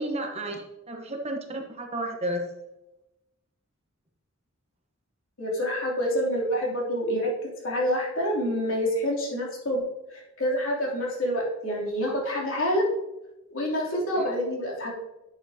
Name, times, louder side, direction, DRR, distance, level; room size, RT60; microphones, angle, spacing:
voice 1, 0.0-2.4 14.1-14.3, right 1 dB, 30° right, 3 dB, 1.1 m, -32 dB
voice 2, 5.4-7.3 7.6-9.8 10.1-12.9 13.5-14.9, equal, 70° left, -3 dB, 3.1 m, -27 dB
11.0 x 7.1 x 2.8 m, 0.93 s
head